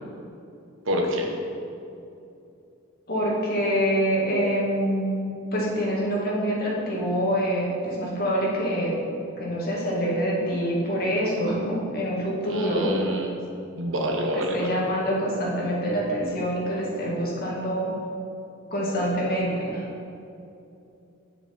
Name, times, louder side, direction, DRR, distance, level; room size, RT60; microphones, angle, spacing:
voice 1, 0.9-1.3 12.5-13.3 13.8-14.7, equal, 65° right, 1 dB, 1.3 m, -27 dB
voice 2, 3.1-5.2 5.5-9.0 9.4-13.0 14.5-18.0 18.7-19.9, equal, 50° left, -4 dB, 2.0 m, -25 dB
8.6 x 7.1 x 4.5 m, 2.7 s
head